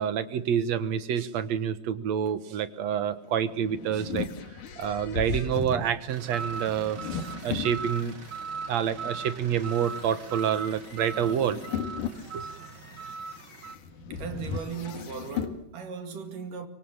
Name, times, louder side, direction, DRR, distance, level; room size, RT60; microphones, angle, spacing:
voice 1, 0.0-4.3 4.8-8.1 8.7-11.6 12.3-12.5, right 8 dB, 65° right, 2.3 m, -28 dB
sound 1, 3.3-8.3 8.9-15.6, left 6 dB, 80° left, 3.4 m, -37 dB
sound 2, 6.1-13.8, right 5 dB, 45° right, 2.1 m, -39 dB
voice 2, 14.1-16.7, right 6 dB, 85° right, 3.9 m, -37 dB
25.0 x 23.5 x 7.4 m
omnidirectional pair, 3.6 m